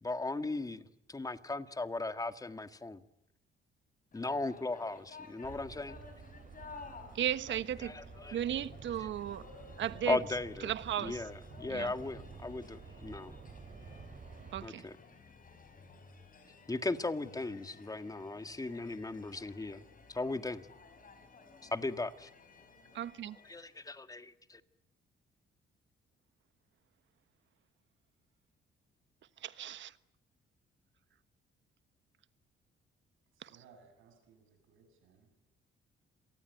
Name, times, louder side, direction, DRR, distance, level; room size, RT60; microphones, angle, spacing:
voice 1, 0.0-3.0 4.1-6.0 7.8-8.4 10.1-10.7 11.0-13.3 14.6-15.0 16.7-19.8 20.1-20.7 21.7-22.3 23.4-24.6, left 2 dB, 15° left, 1.7 m, -37 dB
sound 1, 4.1-23.9, left 4 dB, 45° left, 5.9 m, -56 dB
sound 2, 5.4-14.7, right 5 dB, 40° right, 4.7 m, -51 dB
voice 2, 7.1-7.9 8.3-9.4 9.8-10.2 10.6-11.2 11.7-11.9 14.5-14.8 22.9-23.4 29.4-29.9 33.4-33.5, right 10 dB, 70° right, 1.3 m, -35 dB
voice 3, 33.3-35.3, right 5 dB, 90° right, 7.6 m, -62 dB
27.5 x 19.5 x 9.2 m
cardioid pair, 90°, 20 cm